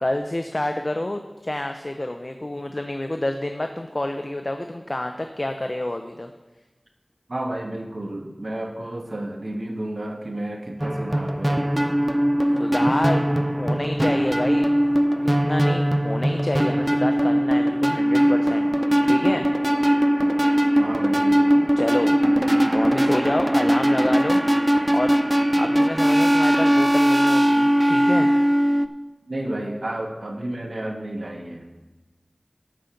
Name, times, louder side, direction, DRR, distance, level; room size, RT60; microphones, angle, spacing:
voice 1, 0.0-6.3 12.6-13.2 13.6-14.7 15.2-18.7 19.1-19.5 21.8-22.2 22.7-24.4 24.9-25.2 25.6-28.3, left 1 dB, 45° left, 5 dB, 0.6 m, -28 dB
voice 2, 7.3-12.0 20.8-21.7 23.7-23.8 29.3-31.6, right 1 dB, 70° right, 3 dB, 1.2 m, -32 dB
sound 1, 10.8-28.9, equal, 20° right, 0.5 m, -20 dB
13.5 x 5.2 x 5.8 m, 1.1 s
wide cardioid pair, 50°, 0 cm